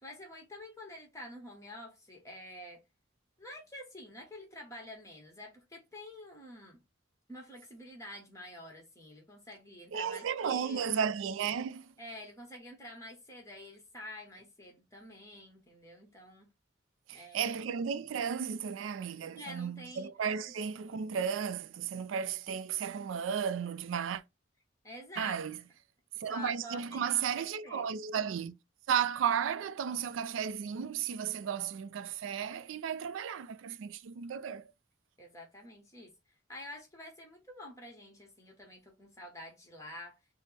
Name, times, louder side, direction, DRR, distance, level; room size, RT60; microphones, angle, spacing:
voice 1, 0.0-2.8 3.4-6.8 7.3-11.1 12.0-16.5 17.1-17.5 19.3-20.1 20.5-20.6 24.8-25.4 26.1-27.9 35.2-36.1 36.5-40.2, left 1 dB, 15° left, 1.1 m, -48 dB
voice 2, 9.9-11.9 17.1-24.2 25.2-25.6 26.2-28.6 28.9-34.7, right 7 dB, 90° right, 0.3 m, -34 dB
4.2 x 2.0 x 3.3 m
head